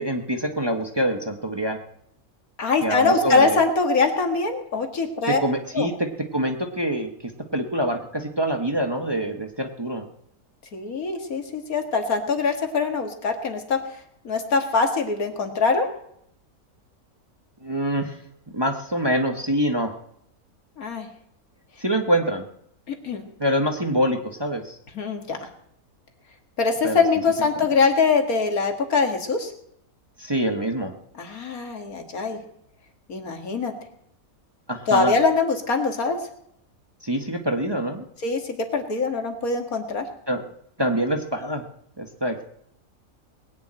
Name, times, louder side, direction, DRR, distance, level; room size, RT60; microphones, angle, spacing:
voice 1, 0.0-1.8 2.8-3.6 5.3-7.1 7.5-10.0 17.6-18.2 18.5-19.9 21.8-22.4 23.4-24.8 26.8-27.0 30.2-30.9 34.7-35.1 37.0-38.0 40.3-40.4 40.8-41.6 42.0-42.4, equal, 20° right, 3 dB, 1.2 m, -25 dB
voice 2, 2.6-5.4 5.7-5.9 10.7-13.8 14.2-15.9 20.8-21.1 22.9-23.2 24.9-25.5 26.6-29.5 31.2-32.4 33.1-33.7 34.9-36.2 38.2-40.1, left 4 dB, 75° left, 4 dB, 2.3 m, -23 dB
20.0 x 7.1 x 8.9 m, 0.72 s
omnidirectional pair, 1.5 m